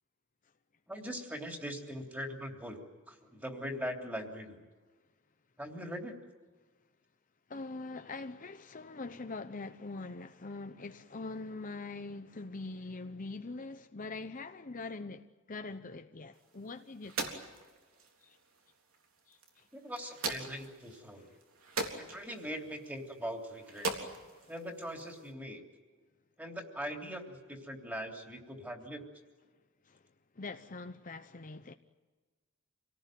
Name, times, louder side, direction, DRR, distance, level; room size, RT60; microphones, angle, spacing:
voice 1, 0.9-4.6 5.6-6.2 19.7-21.3 22.0-24.1 24.5-25.6 26.4-29.0, equal, 10° right, 3.2 m, -41 dB
voice 2, 7.5-17.3 18.2-18.4 19.3-19.6 24.3-24.5 29.8-30.0 30.4-31.7, left 3 dB, 40° left, 0.8 m, -43 dB
sound 1, 16.3-25.3, right 3 dB, 70° right, 3.6 m, -42 dB
27.5 x 18.5 x 9.3 m
head